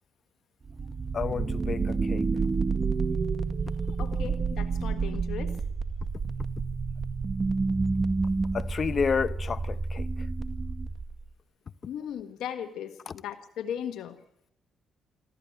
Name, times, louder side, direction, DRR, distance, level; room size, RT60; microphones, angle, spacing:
sound 1, 0.6-11.3, right 4 dB, 30° right, 2.0 m, -29 dB
voice 1, 1.1-2.3 8.5-10.1 13.1-13.2, left 5 dB, 45° left, 0.9 m, -30 dB
voice 2, 4.0-5.6 11.9-14.2, left 9 dB, 80° left, 1.5 m, -37 dB
26.0 x 14.5 x 8.9 m
cardioid pair, 90°, 0 cm